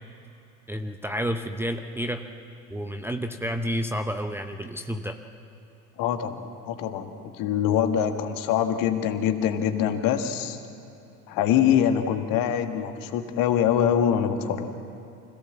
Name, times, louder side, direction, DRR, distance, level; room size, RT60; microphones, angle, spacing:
voice 1, 0.7-2.2 2.7-5.2, equal, 5° right, 5 dB, 0.8 m, -30 dB
voice 2, 6.0-10.6 11.3-14.7, left 9 dB, 45° left, 7 dB, 1.8 m, -24 dB
25.5 x 16.5 x 7.5 m, 3.0 s
figure-of-eight pair, 75°, 45 cm